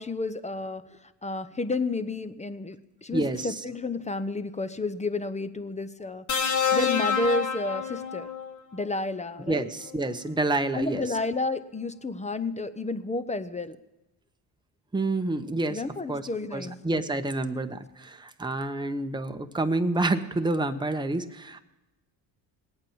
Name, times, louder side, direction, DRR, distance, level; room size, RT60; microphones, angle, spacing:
voice 1, 0.0-8.3 8.7-9.6 10.7-13.8 15.7-16.8, left 3 dB, 15° left, 12 dB, 0.8 m, -31 dB
voice 2, 3.1-3.5 9.5-11.0 14.9-15.8 16.1-21.6, right 2 dB, 10° right, 7 dB, 1.0 m, -28 dB
sound 1, 6.3-8.5 9.9-10.1, left 6 dB, 45° left, 1.6 m, -27 dB
18.5 x 8.9 x 7.2 m, 1.0 s
supercardioid pair, 75°, 43 cm